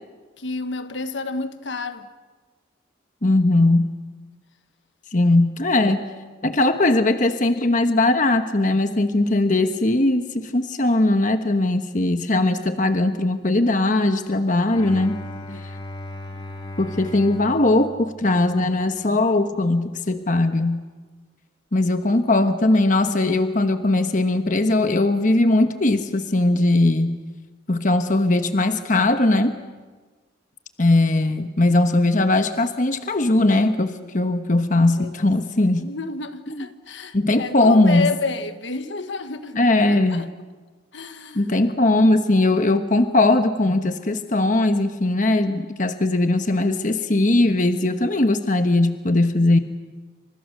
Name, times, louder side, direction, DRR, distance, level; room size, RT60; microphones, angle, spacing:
voice 1, 0.4-2.1 15.4-15.6 34.0-34.2 34.8-35.1 35.8-40.3 40.9-41.6, left 3 dB, 70° left, 1.4 m, -30 dB
voice 2, 3.2-3.9 5.1-6.0 6.4-15.2 16.8-20.8 21.7-27.2 27.7-29.6 30.8-35.9 36.5-36.6 37.1-38.1 39.6-40.3 41.3-49.6, left 2 dB, 40° left, 1.2 m, -19 dB
Bowed string instrument, 14.7-18.9, left 1 dB, 25° left, 2.8 m, -36 dB
29.0 x 27.0 x 6.6 m
head